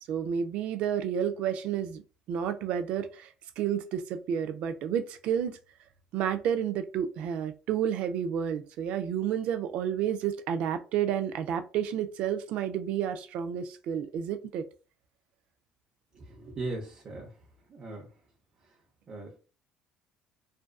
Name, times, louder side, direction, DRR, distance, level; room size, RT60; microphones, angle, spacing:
voice 1, 0.1-2.0 2.3-3.3 3.6-5.6 6.1-14.7, right 9 dB, 70° right, 0.4 m, -30 dB
voice 2, 16.1-17.3 17.7-18.1 19.1-19.4, right 2 dB, 45° right, 0.7 m, -38 dB
2.5 x 2.3 x 2.2 m
supercardioid pair, 90°, 2 cm